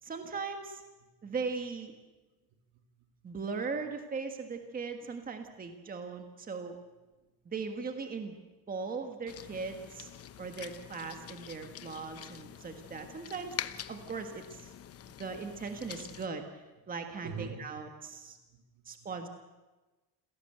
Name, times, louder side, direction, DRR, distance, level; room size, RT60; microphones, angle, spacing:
voice 1, 0.0-0.8 1.2-1.9 3.2-6.8 7.4-8.4 8.7-10.1 10.4-13.6 13.9-14.7 15.2-16.5 16.9-18.4 18.8-19.3, right 4 dB, 20° right, 5 dB, 1.6 m, -39 dB
voice 2, 2.7-3.3 10.2-10.3 15.0-15.1 15.5-15.6 17.2-19.1, right 5 dB, 75° right, 4 dB, 3.5 m, -47 dB
sound 1, 9.3-16.3, left 10 dB, 40° left, 0.9 m, -45 dB
28.0 x 17.0 x 8.0 m, 1.2 s
cardioid pair, 165°, 38 cm